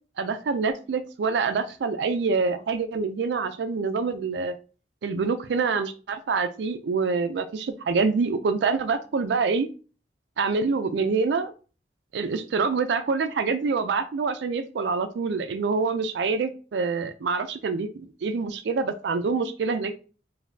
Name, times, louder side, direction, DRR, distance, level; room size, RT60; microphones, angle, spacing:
voice 1, 0.2-4.6 5.0-9.7 10.4-11.5 12.1-19.9, right 4 dB, 75° right, 9 dB, 0.4 m, -26 dB
4.9 x 2.6 x 2.6 m, 0.36 s
head